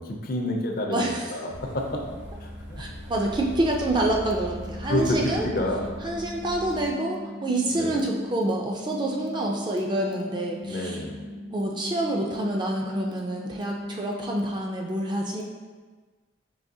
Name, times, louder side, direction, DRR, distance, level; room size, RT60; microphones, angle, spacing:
voice 1, 0.0-2.0 2.4-2.8 4.9-5.9 7.7-8.0 10.7-11.2, left 1 dB, 50° left, 1 dB, 0.4 m, -29 dB
voice 2, 0.9-1.3 2.8-5.5 6.0-11.0 11.5-15.4, right 1 dB, 25° right, -1 dB, 0.3 m, -27 dB
sound 1, 1.5-6.9, equal, 70° right, 0.6 m, -40 dB
sound 2, 4.3-14.4, left 1 dB, 85° right, 1.5 m, -40 dB
4.7 x 2.8 x 2.6 m, 1.4 s
head